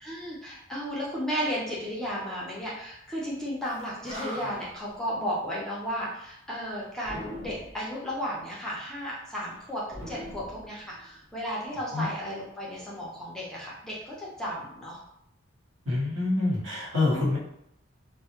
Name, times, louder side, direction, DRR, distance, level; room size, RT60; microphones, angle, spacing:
voice 1, 0.0-15.0 17.1-17.4, equal, 5° left, -6 dB, 0.5 m, -34 dB
Animal, 3.7-3.8 4.0-4.8 7.0-7.9 9.9-11.2, equal, 35° right, 1.0 m, -40 dB
voice 2, 15.8-17.4, left 2 dB, 75° right, -7 dB, 1.0 m, -26 dB
2.1 x 2.0 x 2.8 m, 0.75 s
head